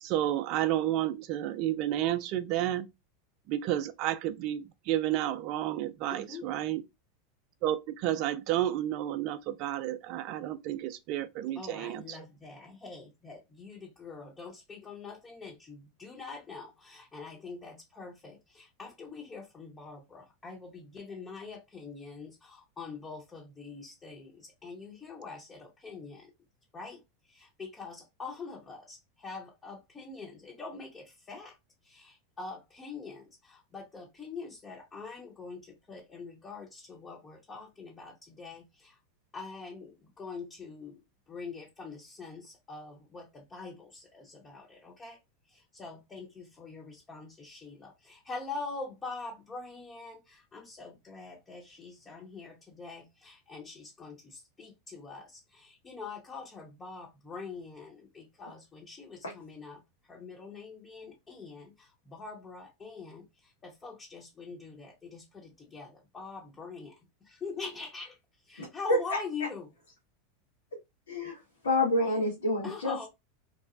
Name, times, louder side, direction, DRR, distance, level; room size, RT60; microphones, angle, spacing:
voice 1, 0.0-2.9 3.5-6.8 7.6-12.0, right 13 dB, 55° right, 0.4 m, -31 dB
voice 2, 6.1-6.5 11.5-26.3 26.7-31.6 31.8-39.0 39.3-45.2 45.4-69.7 72.6-73.1, left 4 dB, 20° left, 0.9 m, -44 dB
voice 3, 68.6-69.2 71.1-71.4 71.6-73.1, left 1 dB, 85° left, 1.2 m, -28 dB
3.0 x 2.1 x 2.5 m
hypercardioid pair, 95°, 0 cm